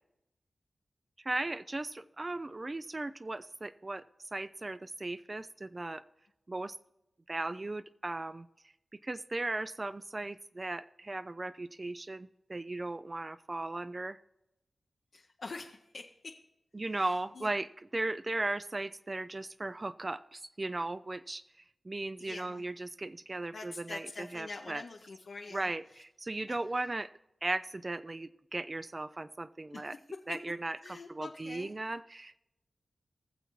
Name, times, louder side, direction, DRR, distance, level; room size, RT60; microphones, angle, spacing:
voice 1, 1.2-4.0 4.3-6.0 6.5-6.8 7.3-8.5 9.0-14.2 16.7-17.7 17.9-21.4 21.9-24.8 25.5-27.1 27.4-30.0 30.3-32.4, right 2 dB, 40° right, 13 dB, 0.3 m, -37 dB
voice 2, 15.1-16.5 16.9-17.5 22.2-22.6 23.5-26.0 26.5-26.6 29.7-30.4 30.8-31.7, left 3 dB, 70° left, 1 dB, 0.6 m, -45 dB
20.0 x 6.9 x 3.0 m, 0.87 s
cardioid pair, 45°, 0 cm